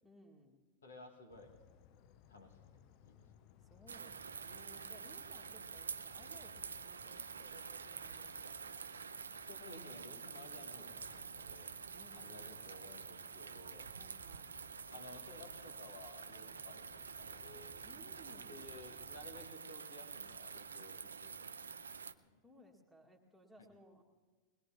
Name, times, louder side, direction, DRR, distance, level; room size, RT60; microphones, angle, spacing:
voice 1, 0.0-0.6 3.6-8.8 11.9-12.7 14.0-14.6 17.8-18.9 22.4-24.0, right 1 dB, ahead, -2 dB, 2.1 m, -62 dB
voice 2, 0.8-1.6 2.3-2.6 3.0-3.2 9.4-11.7 12.1-13.9 14.9-17.8 18.5-22.4 23.6-23.7, left 2 dB, 65° left, 3 dB, 2.0 m, -55 dB
sound 1, 1.3-19.5, left 9 dB, 45° left, 0.5 m, -64 dB
sound 2, 3.9-22.1, right 6 dB, 70° right, 0.4 m, -48 dB
21.5 x 20.5 x 3.0 m, 1.4 s
figure-of-eight pair, 90°, 0 cm